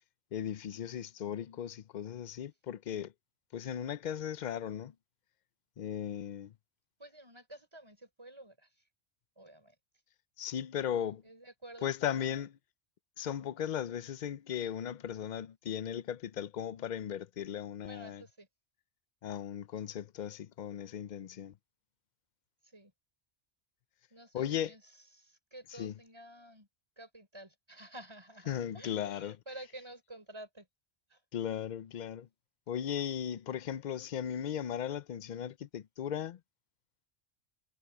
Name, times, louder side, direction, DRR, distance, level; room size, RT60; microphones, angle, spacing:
voice 1, 0.3-3.1 3.5-4.9 5.8-6.5 10.4-11.2 11.8-12.5 13.2-18.2 19.2-21.5 24.3-24.7 25.8-25.9 28.5-29.4 31.3-32.3 32.7-36.4, left 9 dB, 50° left, 0.6 m, -37 dB
voice 2, 7.0-8.8 9.4-9.8 11.2-12.5 17.8-18.5 22.6-22.9 24.1-26.7 27.0-30.7 31.1-31.2, right 1 dB, 25° right, 4.5 m, -51 dB
omnidirectional pair, 1.1 m